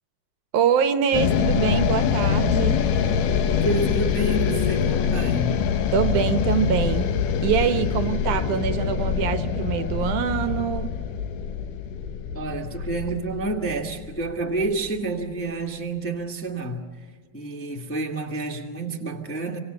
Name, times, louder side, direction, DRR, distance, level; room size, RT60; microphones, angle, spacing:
voice 1, 0.5-2.9 5.9-7.1 7.4-10.9, right 8 dB, 75° right, 2.4 m, -24 dB
sound 1, 1.1-15.4, left 7 dB, 80° left, 2.8 m, -24 dB
voice 2, 3.6-5.6 12.3-16.9 17.3-19.6, right 2 dB, 5° left, 1.3 m, -29 dB
26.5 x 25.5 x 7.0 m
omnidirectional pair, 3.8 m